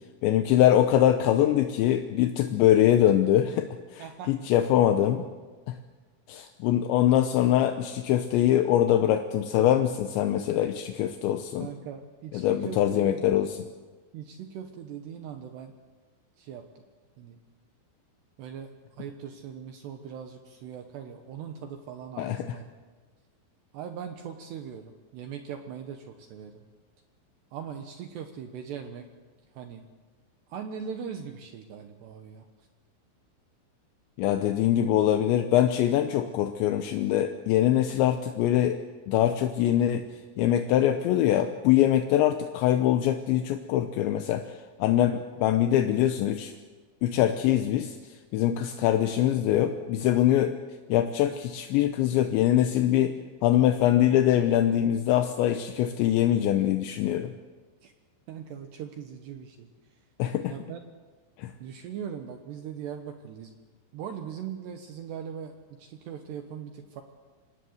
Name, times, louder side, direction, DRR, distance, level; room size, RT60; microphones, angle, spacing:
voice 1, 0.2-5.2 5.7-5.8 6.3-11.7 12.3-13.5 22.2-22.4 34.2-38.8 39.1-40.1 40.4-44.5 44.8-46.5 47.0-48.0 48.3-50.6 50.9-57.3 60.2-60.5 61.4-61.5, left 11 dB, 80° left, 7 dB, 2.9 m, -23 dB
voice 2, 4.0-4.3 11.6-13.3 14.1-15.7 16.4-16.8 17.2-17.4 18.4-18.7 19.0-22.6 23.7-26.6 27.5-29.1 29.5-29.9 30.5-32.5 57.8-57.9 58.3-59.7 60.5-60.8 61.6-63.6 63.9-67.0, right 8 dB, 70° right, 5 dB, 2.9 m, -40 dB
26.5 x 18.5 x 8.0 m, 1.4 s
omnidirectional pair, 5.9 m